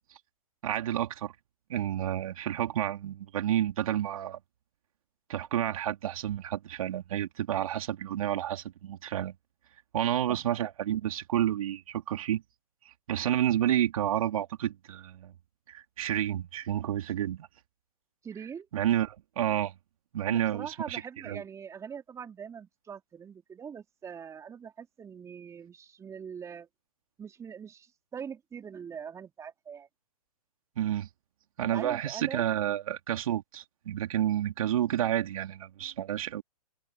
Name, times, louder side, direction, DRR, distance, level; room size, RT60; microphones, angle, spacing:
voice 1, 0.6-1.3 1.7-4.4 5.3-9.3 9.9-12.4 13.1-15.3 15.7-17.5 18.7-19.7 20.1-21.4 30.8-31.1 31.6-36.4, right 11 dB, 60° right, 3.4 m, -30 dB
voice 2, 18.2-18.7 20.2-26.7 27.2-29.9 31.6-32.4, right 7 dB, 15° right, 3.9 m, -42 dB
hypercardioid pair, 125°, 20 cm